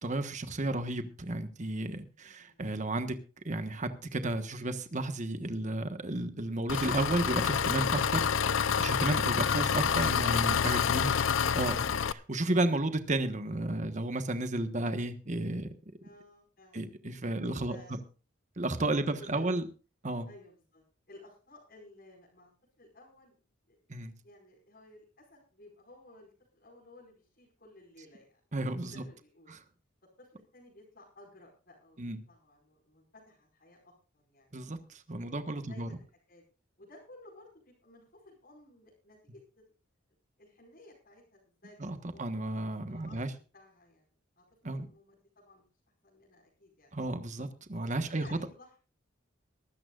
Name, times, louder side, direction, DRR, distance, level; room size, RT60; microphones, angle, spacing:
voice 1, 0.0-3.2 3.4-8.3 8.6-11.0 11.5-15.7 16.7-18.0 18.6-19.7 20.0-20.3 23.9-24.1 28.5-29.0 29.5-29.6 32.0-32.2 34.5-35.9 41.8-43.3 44.6-44.9 46.9-48.2, right 2 dB, 40° right, 9 dB, 1.3 m, -33 dB
voice 2, 2.2-2.8 16.0-17.0 17.4-18.0 18.9-19.6 20.3-22.5 22.8-23.4 23.7-23.8 24.2-28.4 28.9-29.6 30.2-33.9 34.2-34.6 35.2-36.4 36.8-39.7 40.4-42.4 42.9-43.2 43.5-44.1 44.4-44.5 44.7-45.6 46.0-46.9 48.1-48.9, left 1 dB, 50° left, -4 dB, 5.2 m, -56 dB
Engine, 6.7-12.1, left 7 dB, 80° left, 0.6 m, -28 dB
23.5 x 13.0 x 2.5 m, 0.34 s
head